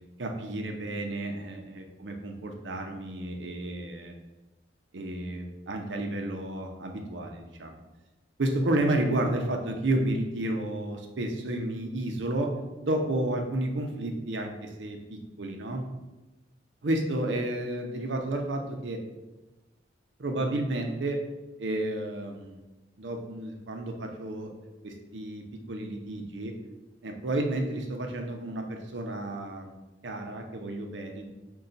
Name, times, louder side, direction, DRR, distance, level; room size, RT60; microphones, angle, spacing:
voice 1, 0.2-4.1 4.9-7.8 8.4-12.5 12.8-15.8 16.8-19.0 20.2-21.2 21.6-22.6 23.0-24.5 24.8-26.5 27.0-29.7 30.0-31.3, right 1 dB, 85° right, 3 dB, 0.6 m, -31 dB
5.4 x 2.3 x 3.9 m, 1.1 s
head